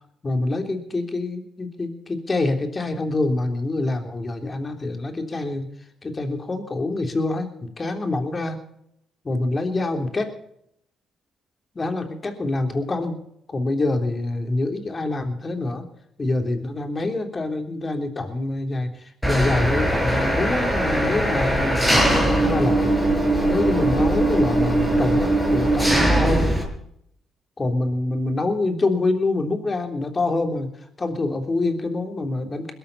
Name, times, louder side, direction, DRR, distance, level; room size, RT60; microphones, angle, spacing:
voice 1, 0.2-5.7 6.0-8.6 9.2-10.3 11.7-13.2 13.5-15.8 16.2-22.9 23.4-26.5 27.6-30.7 31.0-32.7, left 2 dB, 30° left, 5 dB, 3.4 m, -25 dB
Engine, 19.2-26.6, right 1 dB, ahead, 6.0 m, -20 dB
21.0 x 13.0 x 4.1 m, 0.72 s
cardioid pair, 90°, 0 cm